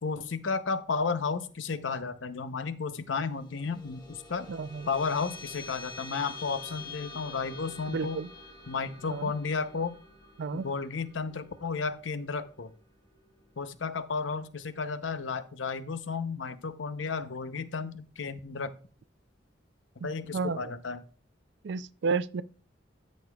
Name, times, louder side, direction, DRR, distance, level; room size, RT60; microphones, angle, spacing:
voice 1, 0.0-4.5 4.9-8.2 8.7-9.9 10.5-12.7 13.6-18.8 20.0-21.0, left 4 dB, 80° left, 0.7 m, -33 dB
sound 1, 3.2-14.0, left 3 dB, 25° left, 1.2 m, -47 dB
voice 2, 4.5-4.9 7.9-8.3 9.1-9.3 10.4-10.7 20.0-20.6 21.6-22.4, right 5 dB, 65° right, 0.4 m, -32 dB
13.5 x 6.5 x 2.3 m
head